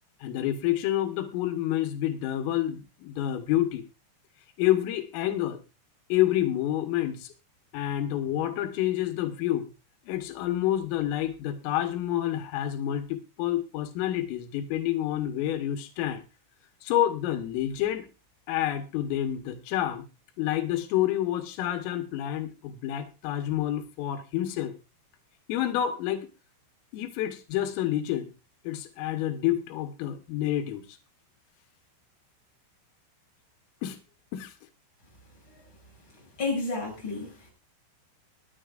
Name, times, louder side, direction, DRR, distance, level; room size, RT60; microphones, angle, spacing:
voice 1, 0.2-3.9 4.6-5.6 6.1-7.3 7.7-9.7 10.1-16.2 16.8-18.1 18.5-20.1 20.4-24.7 25.5-26.3 26.9-28.3 28.7-31.0 33.8-34.0 34.3-34.5, left 12 dB, 90° left, 7 dB, 3.8 m, -28 dB
voice 2, 36.4-37.5, left 3 dB, 25° left, -2 dB, 7.7 m, -31 dB
22.5 x 11.5 x 2.5 m, 0.30 s
omnidirectional pair, 5.7 m